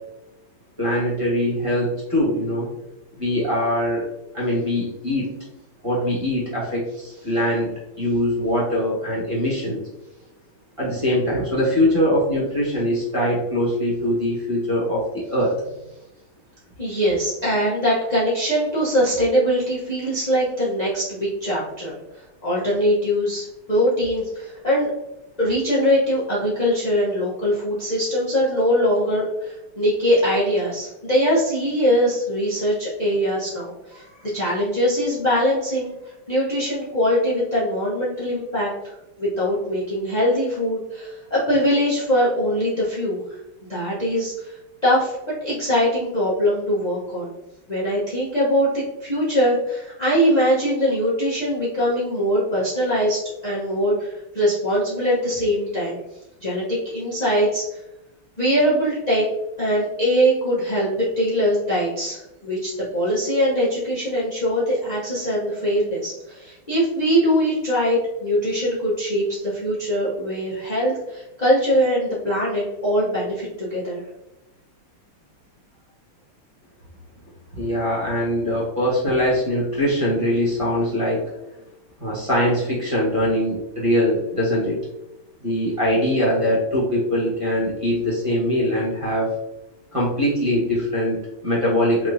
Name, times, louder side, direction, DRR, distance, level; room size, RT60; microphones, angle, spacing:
voice 1, 0.8-2.7 3.2-4.1 4.3-5.3 5.8-9.8 10.8-15.6 77.5-81.2 82.0-84.8 85.4-89.3 89.9-92.1, left 1 dB, 15° right, -7 dB, 1.3 m, -22 dB
voice 2, 16.8-22.0 22.4-24.9 25.4-35.9 36.3-38.7 39.2-43.2 43.7-44.6 44.8-47.3 47.7-56.0 56.4-57.8 58.4-59.2 59.6-74.0, equal, 55° left, -8 dB, 0.4 m, -22 dB
4.6 x 3.4 x 2.7 m, 0.94 s
omnidirectional pair, 2.4 m